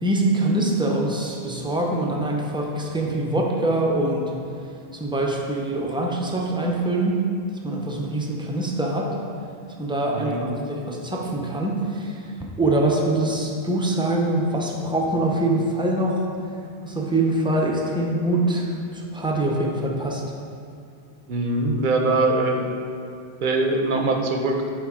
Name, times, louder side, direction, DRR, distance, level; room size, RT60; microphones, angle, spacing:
voice 1, 0.0-4.4 4.9-7.2 7.6-9.1 9.8-12.3 12.6-16.3 16.8-20.2, right 1 dB, 5° right, -1 dB, 0.5 m, -24 dB
voice 2, 10.1-10.5 21.3-22.7 23.4-24.7, right 2 dB, 55° right, 3 dB, 0.8 m, -22 dB
7.9 x 3.5 x 4.9 m, 2.4 s
omnidirectional pair, 1.1 m